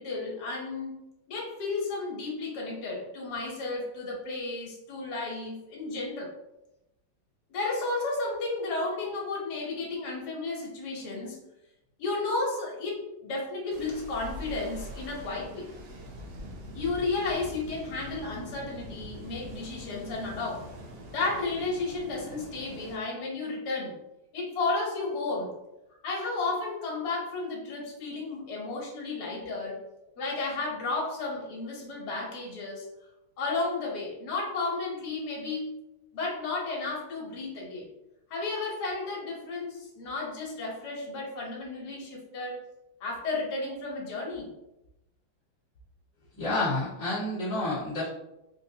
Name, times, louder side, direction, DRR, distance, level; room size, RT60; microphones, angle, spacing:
voice 1, 0.0-6.3 7.5-11.4 12.0-15.7 16.7-20.7 21.1-24.0 24.3-25.5 26.0-29.8 30.2-32.9 33.4-35.7 36.1-37.9 38.3-42.6 43.0-44.5, left 3 dB, 60° left, -3 dB, 1.4 m, -33 dB
sound 1, 13.7-23.0, equal, 75° right, 1.4 m, -43 dB
voice 2, 46.3-48.1, left 2 dB, 5° left, -13 dB, 1.1 m, -29 dB
3.8 x 2.5 x 2.7 m, 0.89 s
omnidirectional pair, 2.2 m